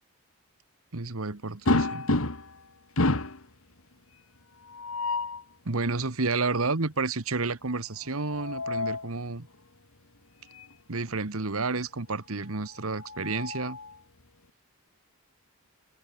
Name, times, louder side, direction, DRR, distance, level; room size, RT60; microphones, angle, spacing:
voice 1, 0.9-2.1 5.6-9.5 10.9-13.8, right 3 dB, 65° right, 1.4 m, -30 dB
sound 1, 1.7-2.6 3.0-3.4 4.7-5.4 8.1-9.1 10.5-10.7 11.1-11.2 12.7-14.0, left 2 dB, 65° left, 2.2 m, -29 dB
head